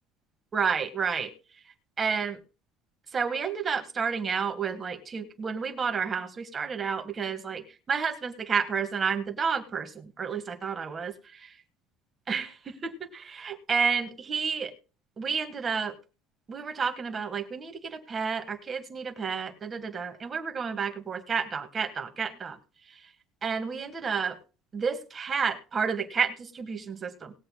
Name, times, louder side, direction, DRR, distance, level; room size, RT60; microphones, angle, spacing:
voice 1, 0.5-1.3 2.0-2.4 3.1-11.1 12.3-14.7 15.2-15.9 16.5-22.6 23.4-24.4 24.7-27.3, right 6 dB, 20° right, 5 dB, 1.5 m, -30 dB
20.0 x 7.8 x 2.2 m, 0.36 s
cardioid pair, 170°, 0 cm